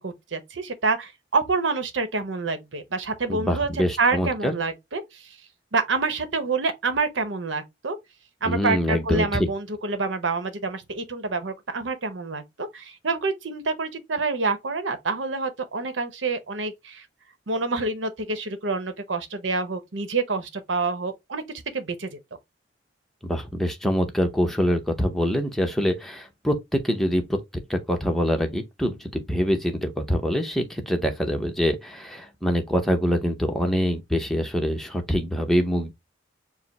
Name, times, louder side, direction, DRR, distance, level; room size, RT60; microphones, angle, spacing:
voice 1, 0.0-3.7 4.0-5.2 5.7-8.0 8.4-17.0 17.5-21.4 21.7-22.2, right 3 dB, 85° right, 0.9 m, -27 dB
voice 2, 3.3-4.6 8.4-9.5 23.2-27.2 27.7-35.9, equal, ahead, 0.7 m, -25 dB
4.8 x 2.0 x 4.1 m
head